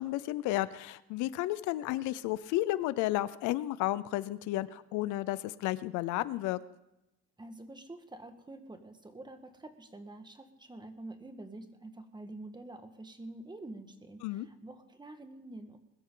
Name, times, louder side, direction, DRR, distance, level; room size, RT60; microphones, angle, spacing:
voice 1, 0.0-6.6 14.2-14.5, left 16 dB, 90° left, 16 dB, 0.7 m, -32 dB
voice 2, 7.4-15.8, right 2 dB, 15° right, 7 dB, 1.6 m, -47 dB
21.0 x 13.0 x 3.9 m, 0.91 s
cardioid pair, 105°, 29 cm